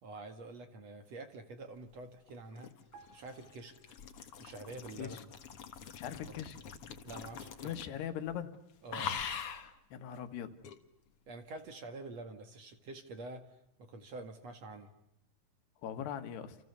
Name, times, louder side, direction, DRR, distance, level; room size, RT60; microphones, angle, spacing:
voice 1, 0.0-2.8 3.1-4.0 4.4-5.2 6.2-6.4 7.0-7.7 8.8-9.1 11.3-13.5 13.8-14.9, right 2 dB, 50° right, 7 dB, 2.6 m, -47 dB
sound 1, 2.3-8.0 8.3-8.6 8.9-9.7 10.6-10.8, left 7 dB, 50° left, 1.8 m, -43 dB
sound 2, 2.9-4.6 4.8-5.1, right 4 dB, 80° right, 4.1 m, -60 dB
voice 2, 6.0-6.6 7.6-8.6 9.9-10.5 15.8-16.6, left 9 dB, 90° left, 8 dB, 3.7 m, -40 dB
29.0 x 28.5 x 6.9 m, 0.81 s
omnidirectional pair, 4.6 m